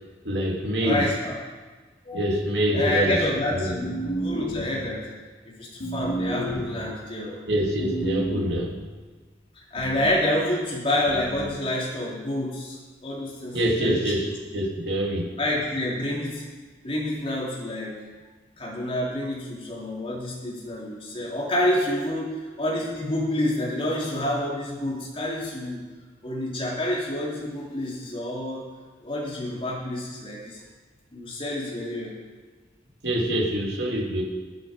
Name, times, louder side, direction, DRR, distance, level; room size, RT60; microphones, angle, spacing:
voice 1, 0.2-1.0 2.1-3.2 3.5-3.7 7.5-8.7 13.5-15.3 33.0-34.2, equal, 75° right, -1 dB, 2.6 m, -25 dB
voice 2, 0.8-1.3 2.0-2.4 2.7-5.1 5.4-7.4 9.5-14.1 15.4-16.4 16.8-18.0 18.6-25.8 26.2-28.6 29.0-30.6 31.1-32.1, left 1 dB, 30° left, -4 dB, 3.6 m, -28 dB
sound 1, 3.8-5.0 5.8-6.9 7.8-8.9 9.8-10.3 11.1-11.6, right 1 dB, 75° left, 3.7 m, -31 dB
20.5 x 8.9 x 5.3 m, 1.4 s
head